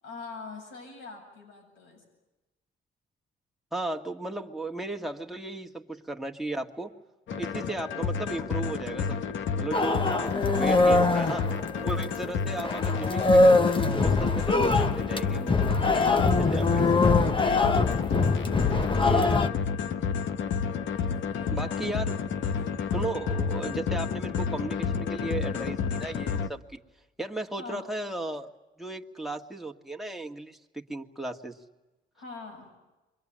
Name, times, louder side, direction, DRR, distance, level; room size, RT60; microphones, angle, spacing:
voice 1, 0.0-2.0 15.6-17.8 21.2-22.4 27.6-27.9 32.1-32.8, left 3 dB, 90° left, 2 dB, 7.9 m, -44 dB
voice 2, 3.7-7.0 7.4-11.5 11.8-15.6 16.5-17.3 19.0-19.4 21.5-22.2 22.9-26.8 27.2-28.5 28.8-31.6, right 2 dB, ahead, 2 dB, 2.1 m, -35 dB
sound 1, 7.3-26.5, left 6 dB, 70° left, 1.5 m, -30 dB
sound 2, 9.7-12.3 12.6-19.5, left 3 dB, 25° left, 1.1 m, -23 dB
27.5 x 24.0 x 9.0 m, 1.1 s
cardioid pair, 90°, 20 cm